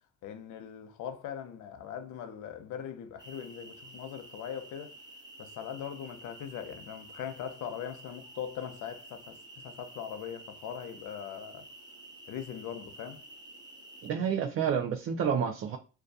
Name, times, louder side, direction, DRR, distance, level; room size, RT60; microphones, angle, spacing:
voice 1, 0.2-5.0 5.4-11.7 12.3-13.2, left 8 dB, 80° left, 0.6 m, -40 dB
sound 1, 3.2-14.1, right 1 dB, 15° right, 0.8 m, -51 dB
voice 2, 14.0-15.8, right 7 dB, 50° right, 0.4 m, -29 dB
2.2 x 2.2 x 2.6 m
cardioid pair, 90°, 30 cm